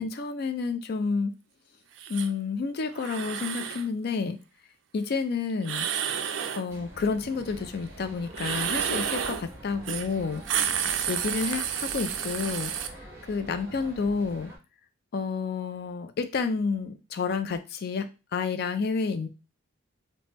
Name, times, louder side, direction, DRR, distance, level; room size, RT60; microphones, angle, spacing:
voice 1, 0.0-1.3 2.1-4.4 4.9-5.9 6.6-10.4 11.1-12.7 13.3-14.5 15.1-19.3, left 4 dB, 50° left, 9 dB, 0.3 m, -30 dB
sound 1, 2.0-2.3 2.9-3.9 5.6-6.7 8.3-9.5 9.9-10.1 10.4-12.9, right 8 dB, 60° right, 0.3 m, -30 dB
sound 2, 6.7-14.6, right 1 dB, 15° right, 0.9 m, -45 dB
3.2 x 2.1 x 2.9 m, 0.29 s
head